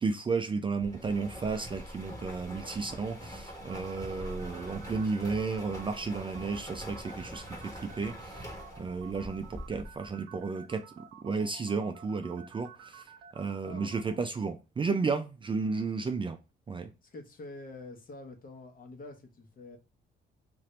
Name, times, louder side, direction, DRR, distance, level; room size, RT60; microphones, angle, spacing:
voice 1, 0.0-8.5 8.8-13.0 13.3-16.4 16.7-16.9, right 4 dB, 25° right, 0.4 m, -33 dB
sound 1, 0.8-10.1, equal, 15° left, 1.2 m, -44 dB
sound 2, 3.5-14.2, right 8 dB, 85° right, 0.7 m, -51 dB
voice 2, 17.0-19.8, left 2 dB, 45° left, 1.0 m, -46 dB
2.7 x 2.5 x 3.1 m
cardioid pair, 90°, 20 cm